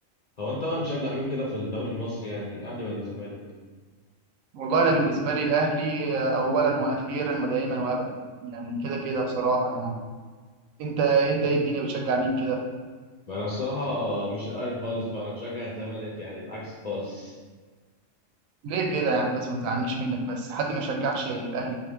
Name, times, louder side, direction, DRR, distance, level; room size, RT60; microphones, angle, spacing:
voice 1, 0.4-3.4 13.3-17.3, left 1 dB, 50° left, -6 dB, 0.5 m, -31 dB
voice 2, 4.5-8.1 8.4-9.9 10.8-12.6 18.6-21.7, right 3 dB, 90° right, 2 dB, 1.0 m, -26 dB
3.9 x 2.4 x 3.4 m, 1.4 s
omnidirectional pair, 1.4 m